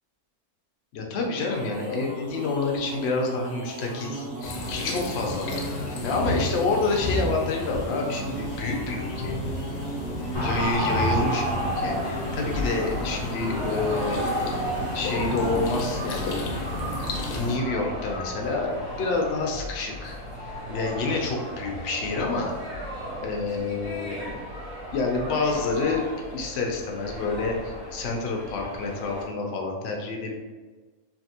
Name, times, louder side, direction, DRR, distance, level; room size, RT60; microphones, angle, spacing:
voice 1, 0.9-5.6 6.0-9.4 10.4-14.2 14.9-16.4 17.3-20.2 20.7-22.5 23.2-24.2 24.9-26.1 26.3-30.4, left 3 dB, 65° left, 1 dB, 0.7 m, -28 dB
sound 1, 1.2-17.0, right 1 dB, 85° right, 1.4 m, -37 dB
sound 2, 4.4-17.6, left 1 dB, 80° left, 1.1 m, -32 dB
sound 3, 10.3-29.2, equal, 50° right, 1.5 m, -33 dB
3.3 x 2.6 x 2.8 m, 1.3 s
omnidirectional pair, 1.6 m